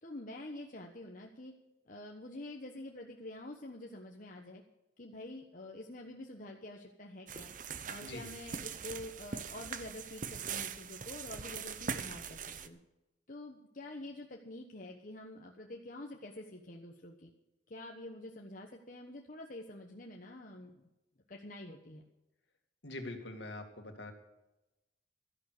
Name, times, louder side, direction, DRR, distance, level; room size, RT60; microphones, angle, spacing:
voice 1, 0.0-1.5 1.9-4.6 5.0-7.5 7.8-12.8 13.3-17.3 17.7-20.8 21.3-22.0, left 1 dB, 45° left, 1 dB, 1.2 m, -47 dB
sound 1, 7.3-12.7, right 6 dB, 45° right, 0.8 m, -42 dB
voice 2, 22.8-24.1, left 2 dB, 70° left, 4 dB, 2.3 m, -43 dB
13.0 x 11.0 x 6.7 m, 0.97 s
head